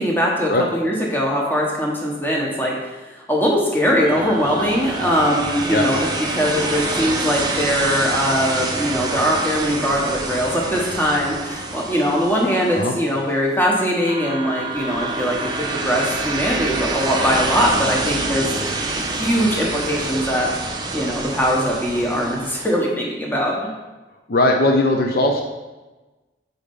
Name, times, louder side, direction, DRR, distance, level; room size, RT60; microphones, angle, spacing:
voice 1, 0.0-2.9 3.3-6.0 6.3-18.5 18.8-20.5 20.9-23.7, equal, 10° left, -2 dB, 1.0 m, -21 dB
sound 1, 4.0-13.3 14.1-22.7, right 3 dB, 25° right, 0.5 m, -27 dB
voice 2, 24.3-25.4, left 2 dB, 55° left, 2 dB, 0.6 m, -18 dB
4.9 x 4.2 x 5.3 m, 1.2 s
head